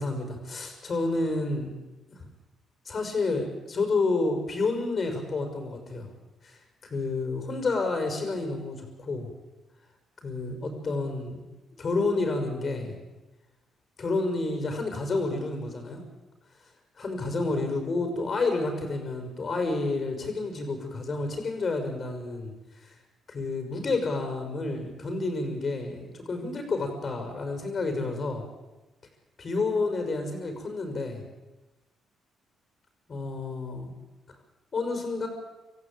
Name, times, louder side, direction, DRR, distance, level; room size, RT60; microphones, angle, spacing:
voice 1, 0.0-1.7 2.1-2.2 2.8-6.1 6.4-9.3 10.2-11.4 11.8-13.0 14.0-16.0 16.6-23.0 23.3-28.4 29.4-31.2 33.1-33.9 34.7-35.3, left 3 dB, 45° left, 4 dB, 5.7 m, -30 dB
27.0 x 15.0 x 9.0 m, 1.1 s
cardioid pair, 90°, 0 cm